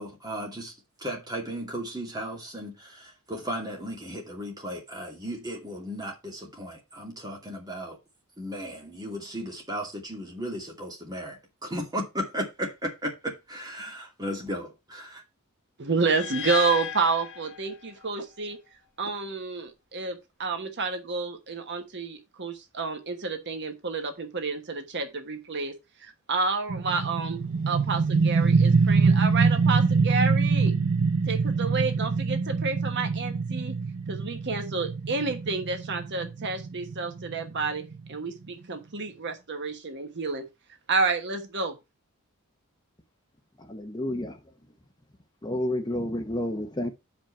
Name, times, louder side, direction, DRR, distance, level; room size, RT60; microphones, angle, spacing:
voice 1, 0.0-8.0 8.4-15.2, equal, 20° right, 2.4 m, -35 dB
voice 2, 15.8-18.6 19.0-25.7 26.0-27.4 27.7-30.7 31.3-33.8 34.1-37.8 38.1-40.5 40.9-41.8, right 4 dB, 55° right, 1.2 m, -30 dB
sound 1, 16.1-18.2, left 8 dB, 55° left, 1.6 m, -35 dB
sound 2, 26.7-38.1, right 4 dB, 90° right, 0.7 m, -24 dB
voice 3, 43.7-44.4 45.4-46.9, left 1 dB, 20° left, 0.8 m, -30 dB
6.0 x 5.3 x 5.7 m
head